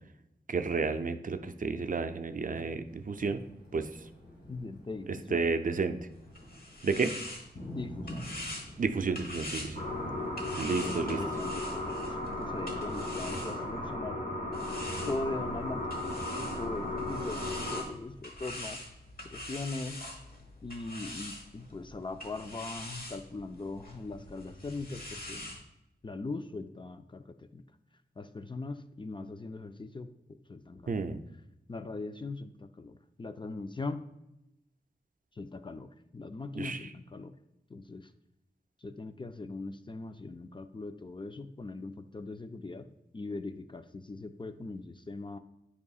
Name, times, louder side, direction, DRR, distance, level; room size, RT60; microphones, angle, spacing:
voice 1, 0.5-3.4 3.7-3.9 5.3-6.0 6.8-7.1 8.8-9.8 10.6-11.2 30.9-31.2 36.5-36.9, right 4 dB, 50° right, 8 dB, 0.4 m, -31 dB
Thunder, 2.9-12.5, equal, 85° left, 1.9 m, -48 dB
voice 2, 4.5-5.4 7.6-8.2 10.8-14.2 15.1-15.8 16.4-18.8 19.3-20.0 20.6-25.6 26.0-27.6 28.2-31.1 31.7-34.0 35.4-37.3 37.7-38.1 38.8-42.8 43.1-45.4, left 3 dB, 30° left, 9 dB, 0.4 m, -40 dB
sound 1, 6.1-13.9 14.5-25.6, left 1 dB, 60° left, 1.1 m, -45 dB
sound 2, 9.8-17.8, left 1 dB, 45° left, 1.3 m, -35 dB
8.2 x 4.8 x 2.4 m, 0.88 s
wide cardioid pair, 60°, 17 cm